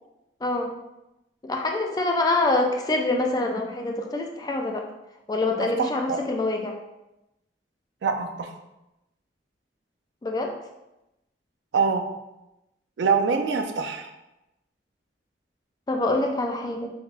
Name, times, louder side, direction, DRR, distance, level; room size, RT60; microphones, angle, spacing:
voice 1, 0.4-0.7 1.4-4.8 5.3-6.8 10.2-10.5 15.9-16.9, left 2 dB, 20° left, 2 dB, 0.3 m, -25 dB
voice 2, 5.8-6.2 8.0-8.5 11.7-12.1 13.0-14.1, right 5 dB, 85° right, 6 dB, 0.4 m, -24 dB
3.4 x 3.0 x 2.4 m, 0.93 s
head